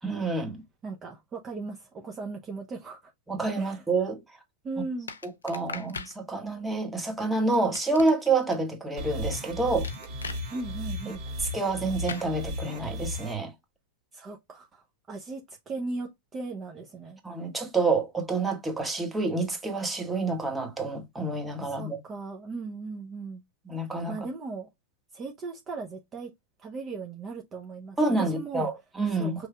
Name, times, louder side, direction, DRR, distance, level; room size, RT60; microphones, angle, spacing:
voice 1, 0.0-0.6 3.3-4.2 5.2-9.9 11.1-11.2 11.5-13.5 17.2-22.0 23.7-24.1 28.0-29.4, right 3 dB, 10° right, 1.2 m, -28 dB
voice 2, 0.8-3.1 3.6-3.8 4.6-5.1 10.5-11.2 14.1-17.2 21.7-23.4 24.1-24.7 25.1-26.3 26.6-28.7 29.1-29.5, right 3 dB, 25° right, 0.8 m, -38 dB
sound 1, 5.1-6.2 7.5-8.5 9.8-10.4 12.1-12.3, left 5 dB, 90° left, 0.6 m, -39 dB
sound 2, 9.0-13.3, left 1 dB, 50° right, 1.9 m, -35 dB
5.3 x 3.2 x 2.3 m
hypercardioid pair, 110°, 0 cm